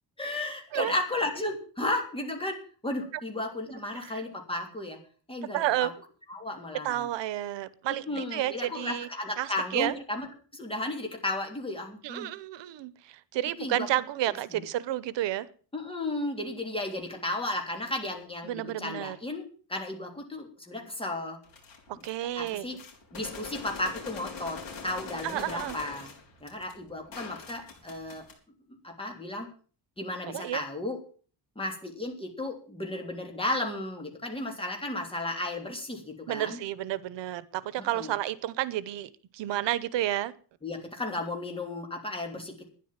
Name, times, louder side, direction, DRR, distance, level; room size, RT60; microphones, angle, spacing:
voice 1, 0.2-2.6 2.8-5.0 5.3-5.9 6.3-7.1 8.1-10.3 10.5-12.3 13.6-13.9 14.5-14.6 15.7-19.4 19.7-21.4 22.4-22.8 23.1-26.1 26.4-28.2 28.8-29.5 30.0-31.0 31.5-36.6 37.8-38.1 40.6-42.7, left 2 dB, 15° left, 2 dB, 3.2 m, -34 dB
voice 2, 5.5-5.9 6.8-9.1 9.4-9.9 12.0-15.5 18.4-19.2 21.9-22.7 25.2-25.8 30.3-30.6 36.3-40.3, right 13 dB, 90° right, 18 dB, 1.0 m, -31 dB
sound 1, 21.4-22.1 22.4-28.3, left 5 dB, 55° left, 5.1 m, -43 dB
12.0 x 10.5 x 7.3 m, 0.41 s
cardioid pair, 160°, 42 cm